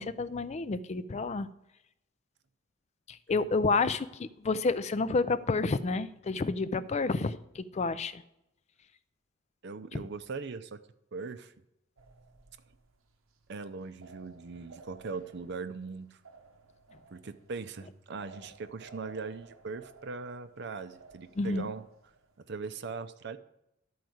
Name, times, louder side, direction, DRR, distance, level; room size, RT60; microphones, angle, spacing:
voice 1, 0.0-1.5 3.1-8.2 9.9-10.0 21.4-21.7, left 3 dB, 35° left, 14 dB, 0.4 m, -30 dB
voice 2, 9.6-10.8 11.1-11.5 13.5-16.2 17.1-21.8 22.5-23.4, right 4 dB, 55° right, 11 dB, 0.6 m, -40 dB
sound 1, 12.0-22.6, right 4 dB, 85° right, 1.0 m, -56 dB
12.0 x 4.7 x 7.8 m, 0.86 s
head